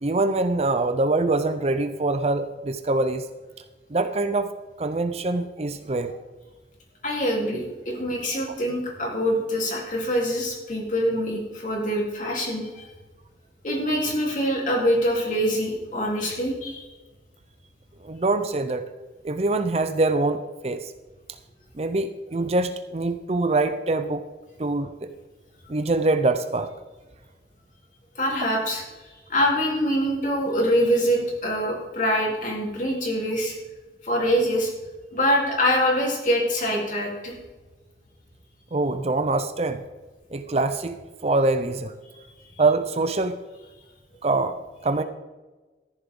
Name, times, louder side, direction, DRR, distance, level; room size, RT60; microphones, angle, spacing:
voice 1, 0.0-3.2 3.9-4.5 4.8-6.1 18.0-18.8 19.2-20.9 21.8-24.2 24.6-25.1 25.7-26.7 38.7-39.8 40.3-41.9 42.6-43.4 44.2-44.5 44.8-45.0, right 2 dB, 35° right, 10 dB, 0.6 m, -24 dB
voice 2, 7.0-12.9 13.6-16.9 28.2-33.6 34.0-34.7 35.1-37.3, equal, 45° left, -2 dB, 3.6 m, -24 dB
14.0 x 10.5 x 3.8 m, 1.2 s
head